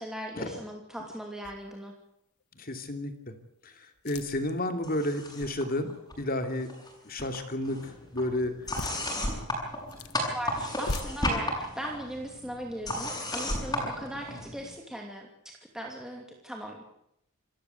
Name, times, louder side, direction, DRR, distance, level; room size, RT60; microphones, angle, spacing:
voice 1, 0.0-1.9 10.3-16.8, right 1 dB, 5° right, 1 dB, 2.7 m, -39 dB
sound 1, 1.4-1.9 2.4-2.5 3.9-4.6 8.6-9.0 9.7-10.2 10.7-11.0, left 2 dB, 80° left, 1.5 m, -38 dB
voice 2, 2.6-3.1 4.0-5.9 6.2-6.7 7.0-7.8 8.1-8.5, left 1 dB, 40° left, 7 dB, 2.8 m, -31 dB
sound 2, 4.8-5.6 5.9-6.9 7.2-14.7, left 1 dB, 15° left, 7.3 m, -34 dB
28.0 x 14.5 x 8.1 m, 0.78 s
head